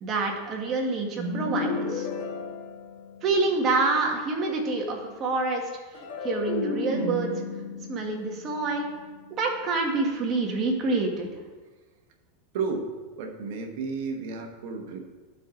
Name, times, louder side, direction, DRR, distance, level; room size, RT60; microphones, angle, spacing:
voice 1, 0.0-2.1 3.2-7.3 7.9-8.9 9.4-11.3, right 3 dB, 35° right, 1 dB, 1.6 m, -27 dB
sound 1, 1.1-3.5 5.9-9.3, left 3 dB, 50° left, 1.9 m, -33 dB
voice 2, 12.5-15.1, right 4 dB, 65° right, 4 dB, 1.2 m, -32 dB
11.0 x 4.7 x 3.8 m, 1.3 s
supercardioid pair, 125°, 0 cm